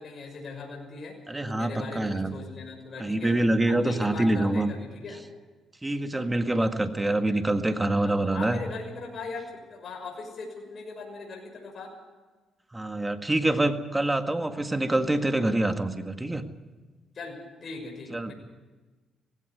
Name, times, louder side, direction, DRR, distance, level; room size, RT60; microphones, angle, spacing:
voice 1, 0.0-1.2 1.5-3.4 3.6-5.2 8.0-11.9 17.1-18.3, left 3 dB, 50° left, 0 dB, 6.3 m, -39 dB
voice 2, 1.3-2.4 3.0-4.7 5.8-8.6 12.7-16.4 18.1-18.3, right 1 dB, 15° right, 7 dB, 1.8 m, -26 dB
18.0 x 16.5 x 9.7 m, 1.3 s
cardioid pair, 90°, 0 cm